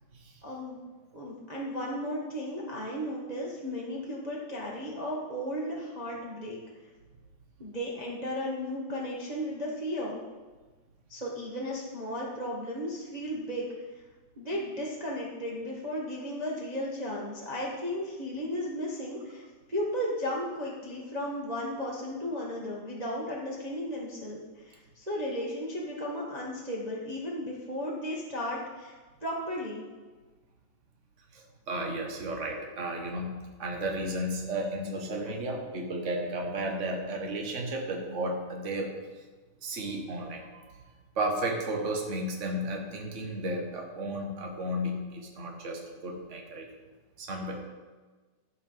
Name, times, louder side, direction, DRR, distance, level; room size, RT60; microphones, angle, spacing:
voice 1, 0.4-0.8 1.1-6.6 7.6-10.2 11.1-13.6 14.4-28.9 29.2-29.8, equal, 75° right, -4 dB, 0.3 m, -35 dB
voice 2, 31.3-38.9 39.6-40.5 41.1-46.7 47.2-47.6, right 1 dB, 45° right, 1 dB, 0.9 m, -33 dB
14.0 x 5.8 x 5.7 m, 1.3 s
omnidirectional pair, 3.8 m